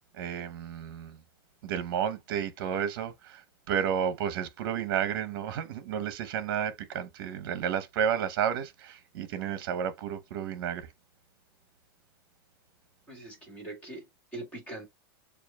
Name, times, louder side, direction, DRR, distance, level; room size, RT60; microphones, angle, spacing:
voice 1, 0.2-1.2 1.6-3.4 3.7-10.9, right 8 dB, 60° right, 0.8 m, -31 dB
voice 2, 13.1-14.9, right 2 dB, 10° left, 1.9 m, -42 dB
6.8 x 2.4 x 2.2 m
supercardioid pair, 155°, 12 cm